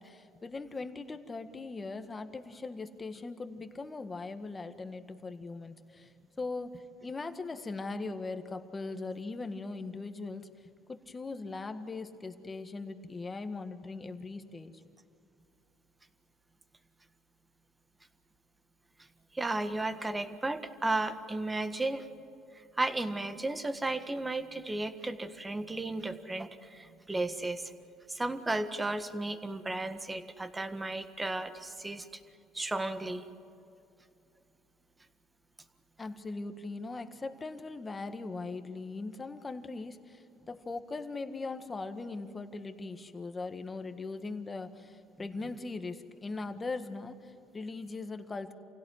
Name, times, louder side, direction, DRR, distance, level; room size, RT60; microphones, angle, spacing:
voice 1, 0.0-10.5 10.9-14.7 36.0-48.5, left 3 dB, 20° left, 8 dB, 1.7 m, -40 dB
voice 2, 19.3-22.1 22.8-27.6 28.1-32.2 32.5-33.2, right 2 dB, 15° right, 9 dB, 1.6 m, -34 dB
28.5 x 17.0 x 9.7 m, 2.6 s
cardioid pair, 115°, 0 cm